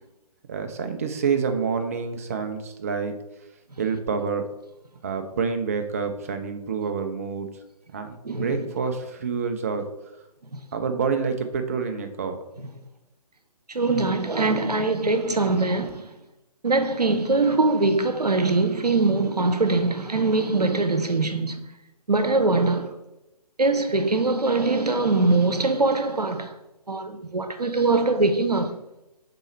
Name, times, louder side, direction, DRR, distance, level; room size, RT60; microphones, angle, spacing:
voice 1, 0.5-3.1 3.8-4.5 5.0-7.5 7.9-9.9 10.7-12.4, right 5 dB, 25° right, 0.4 m, -27 dB
voice 2, 13.7-16.0 16.6-21.6 22.1-22.9 23.6-26.5 26.9-28.7, right 3 dB, 85° right, 0.7 m, -22 dB
5.3 x 4.2 x 4.2 m
figure-of-eight pair, 135°, 20 cm